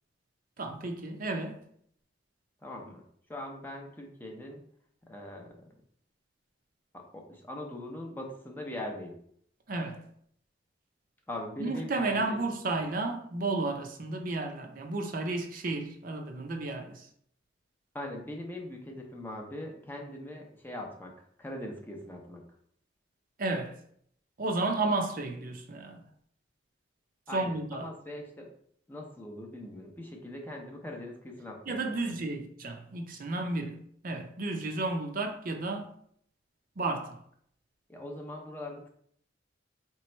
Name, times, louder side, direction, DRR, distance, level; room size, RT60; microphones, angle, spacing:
voice 1, 0.6-1.6 9.7-10.0 11.6-17.0 23.4-23.7 24.4-26.0 27.3-27.8 31.7-33.8 34.0-35.9 36.8-37.2, right 2 dB, 45° right, 0.5 m, -32 dB
voice 2, 2.6-3.0 3.3-4.6 5.1-5.6 6.9-9.2 11.3-12.5 17.9-22.5 27.3-28.5 28.9-32.2 37.9-38.9, left 1 dB, 10° left, 0.6 m, -41 dB
3.3 x 3.1 x 4.4 m
head